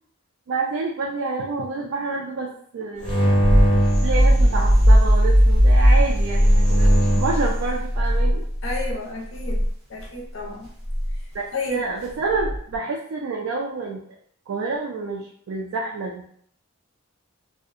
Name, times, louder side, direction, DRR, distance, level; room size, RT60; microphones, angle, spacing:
voice 1, 0.5-3.3 3.6-3.7 4.0-8.4 11.3-14.1 14.5-16.2, right 3 dB, 70° right, -1 dB, 0.3 m, -28 dB
sound 1, 3.0-5.0 6.0-7.5, right 1 dB, 5° left, 0.7 m, -23 dB
sound 2, 3.1-8.9 9.4-9.7 10.9-11.2 12.3-12.8, equal, 85° right, 0.8 m, -17 dB
voice 2, 8.6-10.7 11.5-11.8, left 2 dB, 60° left, -1 dB, 0.5 m, -31 dB
2.6 x 2.0 x 2.4 m, 0.64 s
head